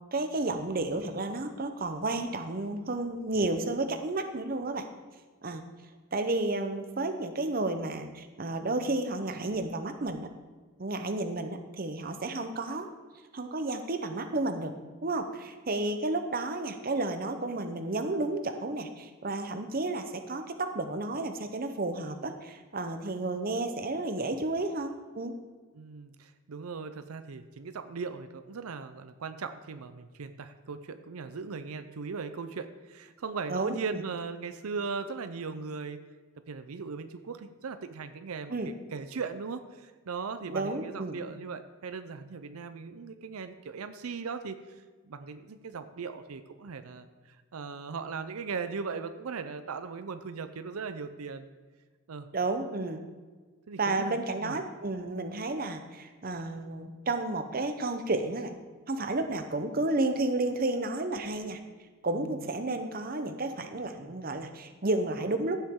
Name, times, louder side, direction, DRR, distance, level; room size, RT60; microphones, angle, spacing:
voice 1, 0.1-4.9 5.4-5.6 6.1-10.3 10.8-12.9 13.3-14.7 15.0-25.3 33.5-34.0 38.5-38.7 40.5-41.2 52.3-53.0 53.8-58.6 58.9-61.6 62.0-65.6, right 2 dB, 40° right, 7 dB, 0.8 m, -32 dB
voice 2, 25.7-36.0 36.5-44.6 45.0-51.5 52.1-52.3 53.7-54.6 62.1-62.4, right 5 dB, 85° right, 10 dB, 0.6 m, -38 dB
14.5 x 7.3 x 3.7 m, 1.4 s
head